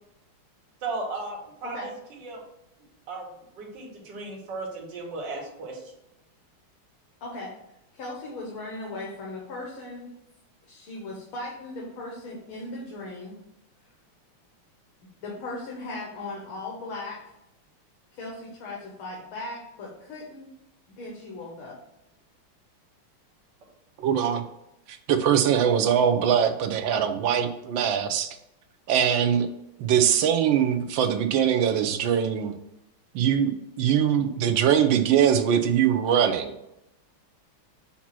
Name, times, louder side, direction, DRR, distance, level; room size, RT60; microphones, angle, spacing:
voice 1, 0.8-1.9 2.2-2.4 3.1-3.3 3.5-5.9, right 3 dB, 55° right, -3 dB, 2.1 m, -35 dB
voice 2, 7.2-7.5 7.9-10.1 10.7-13.4 15.2-17.2 18.1-20.5 21.0-21.8, left 2 dB, 70° left, -3 dB, 2.1 m, -37 dB
voice 3, 24.0-24.4 24.9-28.3 28.9-29.5 29.8-32.5 33.1-36.5, right 8 dB, 70° right, 7 dB, 1.3 m, -22 dB
7.3 x 2.9 x 5.9 m, 0.84 s
omnidirectional pair, 2.4 m